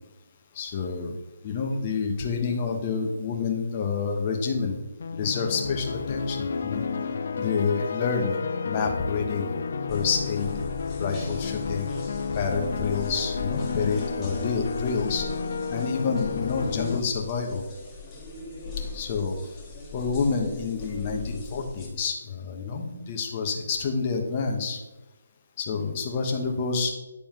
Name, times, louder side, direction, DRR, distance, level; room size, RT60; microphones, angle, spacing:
voice 1, 0.5-1.1 1.4-4.8 5.1-6.8 7.4-8.4 8.6-9.5 9.9-10.5 11.0-11.9 12.3-15.2 15.7-17.6 18.9-19.4 19.9-24.8 25.6-26.9, left 5 dB, 35° left, 2 dB, 1.1 m, -28 dB
sound 1, 5.0-17.0, left 5 dB, 60° left, 0.5 m, -31 dB
sound 2, 9.9-21.9, left 3 dB, 15° left, 1.5 m, -40 dB
9.1 x 4.2 x 3.7 m, 1.1 s
figure-of-eight pair, 145°, 0 cm